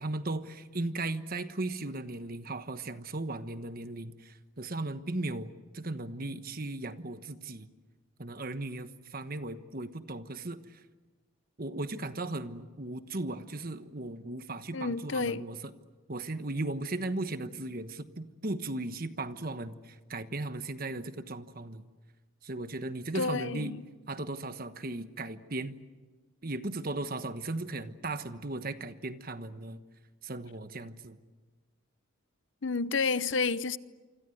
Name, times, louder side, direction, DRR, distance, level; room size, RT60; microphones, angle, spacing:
voice 1, 0.0-7.7 8.2-10.8 11.6-15.6 16.1-21.8 22.4-23.7 24.1-25.8 26.4-29.8 30.2-31.2, right 2 dB, 45° right, 1.2 m, -37 dB
voice 2, 14.7-15.4 23.1-23.8 32.6-33.8, left 4 dB, 60° left, 0.7 m, -30 dB
27.5 x 25.5 x 7.9 m
head